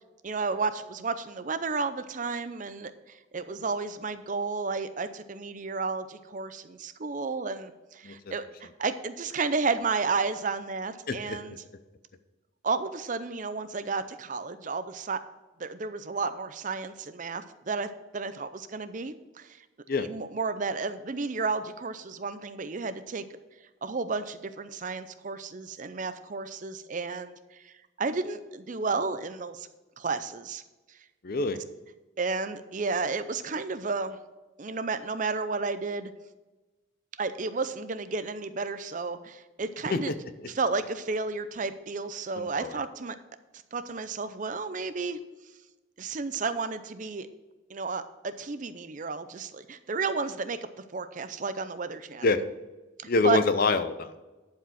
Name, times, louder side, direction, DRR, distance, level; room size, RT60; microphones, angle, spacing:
voice 1, 0.2-11.5 12.6-15.2 15.6-19.6 20.0-23.2 23.8-27.7 28.0-29.7 30.0-30.6 32.2-34.2 34.6-36.1 37.2-40.1 40.5-43.2 43.7-45.2 46.0-47.3 47.7-50.6 50.9-52.3 53.0-53.4, right 4 dB, 40° right, 12 dB, 0.5 m, -32 dB
voice 2, 11.1-11.4 19.9-20.1 31.2-31.6 39.9-40.5 42.4-42.8 52.2-52.4 53.1-54.1, left 3 dB, 45° left, 11 dB, 0.6 m, -26 dB
11.5 x 4.8 x 6.2 m, 1.2 s
head